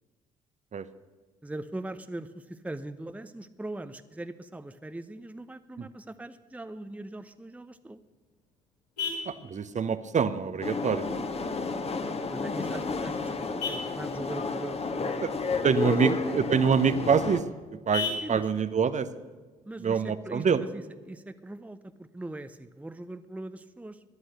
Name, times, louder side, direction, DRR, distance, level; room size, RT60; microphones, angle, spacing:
voice 1, 1.4-8.0 12.1-16.2 18.2-18.4 19.6-24.0, right 1 dB, 5° right, 11 dB, 0.8 m, -41 dB
Vehicle horn car horn honking, 7.7-20.7, left 5 dB, 80° left, 4.1 m, -42 dB
voice 2, 9.2-11.2 15.2-15.3 15.6-17.4 17.9-19.1 19.8-20.6, right 6 dB, 35° right, 13 dB, 0.9 m, -25 dB
sound 1, 10.6-17.4, left 3 dB, 30° left, 1.4 m, -31 dB
17.5 x 11.5 x 6.6 m, 1.3 s
figure-of-eight pair, 45°, 20 cm